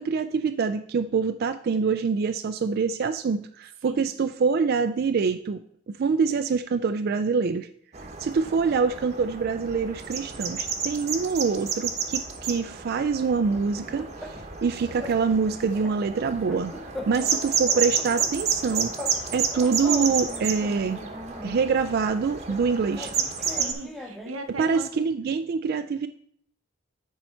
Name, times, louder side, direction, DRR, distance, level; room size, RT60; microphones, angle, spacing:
voice 1, 0.0-5.6 5.9-7.7 8.2-16.7 17.1-18.9 19.3-21.0 21.4-23.1 24.6-26.1, right 5 dB, 50° right, 8 dB, 0.3 m, -25 dB
sound 1, 7.9-23.7, right 6 dB, 35° right, 1.0 m, -31 dB
sound 2, 13.3-14.6 15.0-15.2 15.5-17.4 17.7-19.2 19.5-21.6 22.5-24.5, left 1 dB, ahead, 0.7 m, -40 dB
voice 2, 17.1-17.8 23.5-25.0, right 2 dB, 90° right, 6 dB, 0.9 m, -39 dB
9.6 x 4.6 x 4.4 m, 0.66 s
head